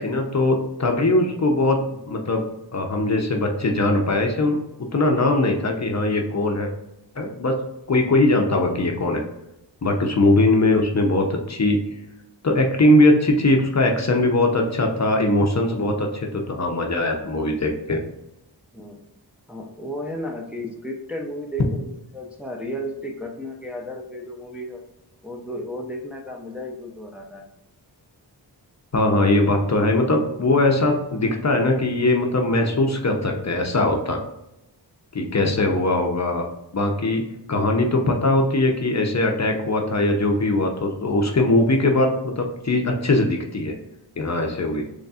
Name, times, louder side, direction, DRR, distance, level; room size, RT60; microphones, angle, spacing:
voice 1, 0.0-1.8 2.1-2.4 2.7-4.6 4.9-6.7 7.2-7.5 7.9-9.2 9.8-11.8 12.4-18.0 28.9-34.2 35.1-36.5 36.7-37.2 37.5-43.7 44.2-44.8, left 2 dB, 40° left, 2 dB, 0.7 m, -20 dB
voice 2, 19.5-24.8 25.2-27.4 35.6-35.8, equal, 5° right, 0 dB, 0.6 m, -33 dB
4.0 x 3.2 x 2.4 m, 0.88 s
cardioid pair, 55°, 43 cm